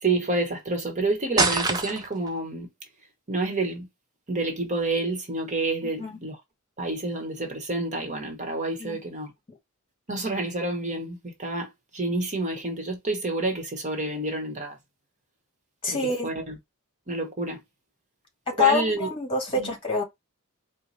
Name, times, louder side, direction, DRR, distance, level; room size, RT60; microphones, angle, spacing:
voice 1, 0.0-2.7 3.3-3.9 4.3-6.4 6.8-9.3 10.1-14.8 15.9-16.6 17.1-17.6 18.6-19.1 19.6-19.7, right 2 dB, 35° right, 1.1 m, -29 dB
sound 1, 1.4-2.3, right 3 dB, 20° right, 0.6 m, -24 dB
voice 2, 15.8-16.3 18.5-20.0, left 3 dB, 25° left, 1.8 m, -26 dB
4.6 x 2.2 x 4.1 m
head